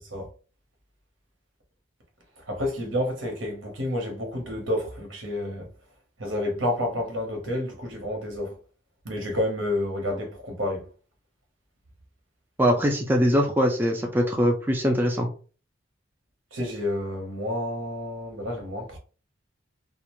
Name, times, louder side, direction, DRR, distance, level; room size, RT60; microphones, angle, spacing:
voice 1, 2.5-5.7 6.2-8.5 9.0-10.8 16.5-19.0, left 1 dB, 80° right, 0.9 m, -29 dB
voice 2, 12.6-15.3, equal, 10° right, 0.3 m, -22 dB
2.4 x 2.1 x 2.9 m
head